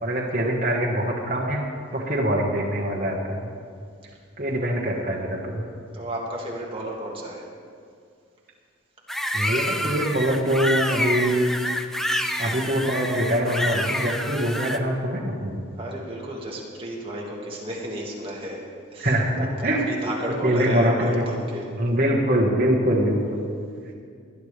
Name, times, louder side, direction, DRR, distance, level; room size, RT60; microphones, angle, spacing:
voice 1, 0.0-1.6 1.9-3.5 4.4-5.6 9.3-11.5 12.4-15.6 19.0-20.0 20.4-21.3 21.8-23.4, equal, 40° right, -3 dB, 1.4 m, -23 dB
voice 2, 5.9-7.5 15.8-18.6 18.9-19.1 19.6-21.7, right 1 dB, 25° right, -3 dB, 1.8 m, -32 dB
sound 1, 9.1-14.8, equal, ahead, 0.4 m, -28 dB
19.5 x 11.0 x 3.3 m, 2.3 s
head